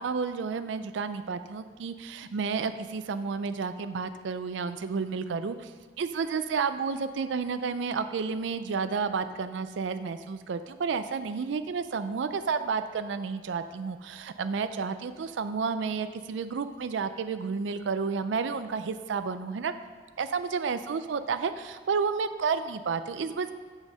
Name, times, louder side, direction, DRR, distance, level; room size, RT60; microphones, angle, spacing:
voice 1, 0.0-5.7 6.0-19.7 20.2-23.5, right 5 dB, 70° right, 10 dB, 0.4 m, -31 dB
7.4 x 6.3 x 6.2 m, 1.5 s
head